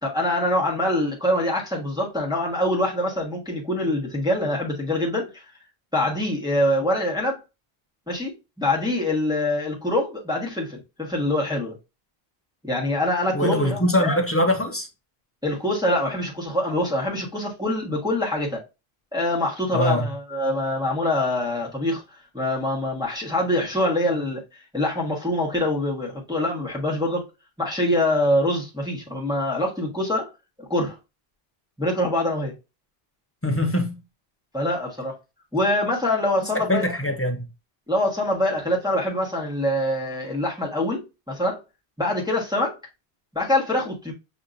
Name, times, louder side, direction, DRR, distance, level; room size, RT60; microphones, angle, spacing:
voice 1, 0.0-5.4 5.9-7.4 8.1-11.7 12.6-14.1 15.4-18.6 19.1-22.0 22.3-27.2 27.6-30.3 30.6-31.0 31.8-32.5 34.5-35.1 35.5-36.9 37.9-41.6 42.0-42.8 43.3-44.1, left 1 dB, 5° right, 1.3 m, -24 dB
voice 2, 13.3-14.9 19.7-20.0 33.4-34.0 36.5-37.4, left 1 dB, 15° left, 0.7 m, -22 dB
6.7 x 2.8 x 2.5 m
omnidirectional pair, 1.0 m